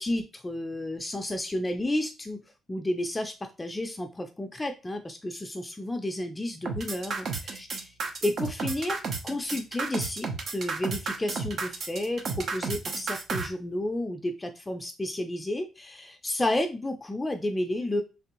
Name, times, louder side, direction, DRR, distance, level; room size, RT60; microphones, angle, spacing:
voice 1, 0.0-2.4 2.7-7.8 8.2-18.0, left 1 dB, 15° left, 6 dB, 0.4 m, -31 dB
sound 1, 6.6-13.5, right 4 dB, 55° right, 0.7 m, -32 dB
3.4 x 3.2 x 2.9 m, 0.29 s
cardioid pair, 90°, 0 cm